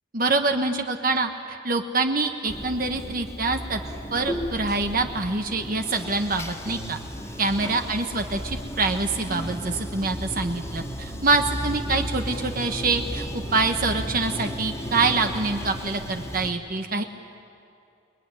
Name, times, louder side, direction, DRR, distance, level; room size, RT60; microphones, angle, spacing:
voice 1, 0.1-3.8 4.1-7.0 7.4-17.0, right 3 dB, 45° right, 5 dB, 1.3 m, -25 dB
Bathtub (filling or washing), 2.5-16.5, equal, 15° left, 2.1 m, -34 dB
28.5 x 21.0 x 9.8 m, 2.5 s
head